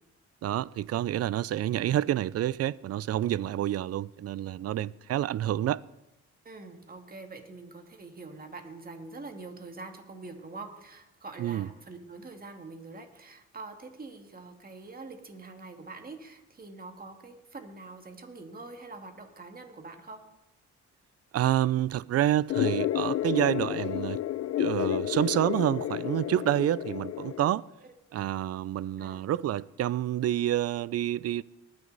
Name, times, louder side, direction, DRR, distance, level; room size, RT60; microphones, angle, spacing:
voice 1, 0.4-5.8 11.4-11.7 21.3-24.2 24.6-27.7 28.1-31.4, right 12 dB, 55° right, 0.5 m, -28 dB
voice 2, 6.4-20.2 27.8-27.9 29.0-29.2, right 3 dB, 30° right, 2.0 m, -45 dB
sound 1, 22.5-27.5, left 12 dB, 55° left, 0.5 m, -30 dB
19.5 x 9.8 x 4.0 m
cardioid pair, 90°, 30 cm